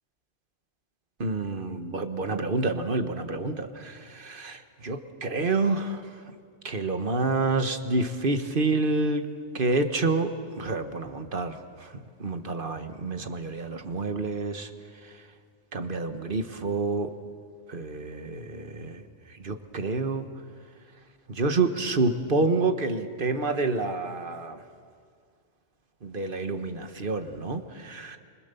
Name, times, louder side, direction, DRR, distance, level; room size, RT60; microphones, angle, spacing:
voice 1, 1.2-6.2 6.6-9.3 9.5-14.7 15.0-15.2 15.7-17.1 17.7-20.3 21.3-24.6 26.0-28.2, right 3 dB, 45° right, 8 dB, 1.5 m, -28 dB
27.5 x 25.0 x 6.9 m, 2.1 s
omnidirectional pair, 1.3 m